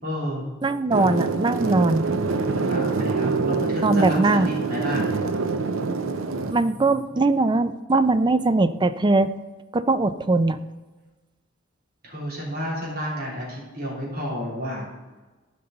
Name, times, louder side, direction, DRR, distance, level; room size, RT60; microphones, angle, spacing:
voice 1, 0.0-0.4 2.4-5.1 6.6-6.7 7.2-7.3 12.0-14.9, equal, 50° right, -4 dB, 3.3 m, -31 dB
voice 2, 0.6-2.0 3.8-4.5 6.5-9.3 9.7-10.6, right 2 dB, 25° right, 11 dB, 0.4 m, -21 dB
sound 1, 0.9-6.5, right 4 dB, 85° right, 0.7 m, -25 dB
14.5 x 5.5 x 3.9 m, 1.2 s
head